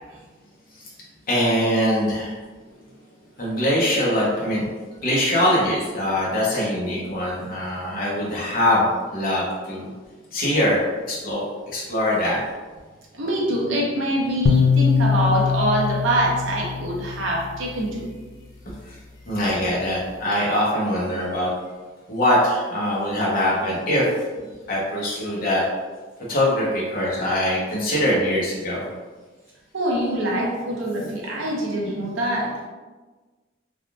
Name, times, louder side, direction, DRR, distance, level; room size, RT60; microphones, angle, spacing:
voice 1, 1.3-2.3 3.4-4.7 5.0-9.9 10.3-10.8 11.1-11.4 11.7-12.4 18.9-19.0 19.3-21.5 22.1-24.1 24.7-25.6 26.3-28.9, left 1 dB, 50° left, -6 dB, 0.9 m, -22 dB
voice 2, 13.1-18.0 29.7-32.5, right 1 dB, 70° right, -3 dB, 0.7 m, -24 dB
sound 1, 14.5-17.7, left 5 dB, 65° left, 0.3 m, -22 dB
3.4 x 2.4 x 2.4 m, 1.3 s
head